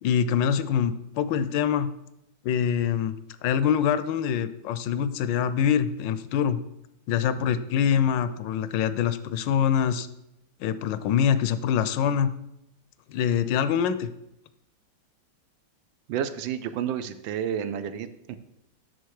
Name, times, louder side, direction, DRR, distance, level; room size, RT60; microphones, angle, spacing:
voice 1, 0.0-1.9 2.4-3.2 3.4-6.6 7.1-10.1 10.6-12.3 13.1-14.1, left 8 dB, 80° left, 13 dB, 1.2 m, -24 dB
voice 2, 16.1-18.4, right 9 dB, 90° right, 11 dB, 1.4 m, -30 dB
8.0 x 6.4 x 4.7 m, 0.86 s
omnidirectional pair, 2.0 m